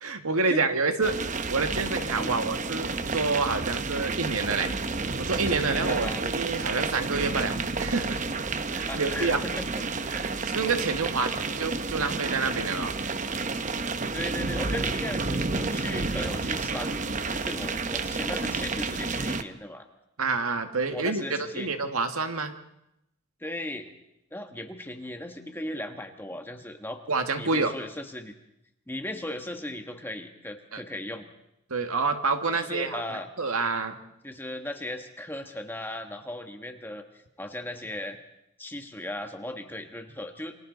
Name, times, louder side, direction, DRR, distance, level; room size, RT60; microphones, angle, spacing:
voice 1, 0.0-4.7 5.2-8.2 8.7-9.4 10.1-12.9 20.2-22.6 27.1-27.7 30.7-30.8 31.7-33.0 33.4-34.0, right 4 dB, 85° right, 7 dB, 1.9 m, -28 dB
sound 1, 1.0-19.4, right 3 dB, 35° right, 0.9 m, -30 dB
voice 2, 5.9-6.2 8.9-9.7 10.1-10.3 11.3-11.4 14.1-19.9 20.9-21.7 23.4-23.9 24.3-27.0 27.4-28.3 28.9-31.3 32.5-33.3 34.2-37.0 37.4-38.2 38.6-40.6, left 1 dB, 10° left, 5 dB, 1.4 m, -37 dB
28.0 x 24.5 x 4.0 m, 0.82 s
head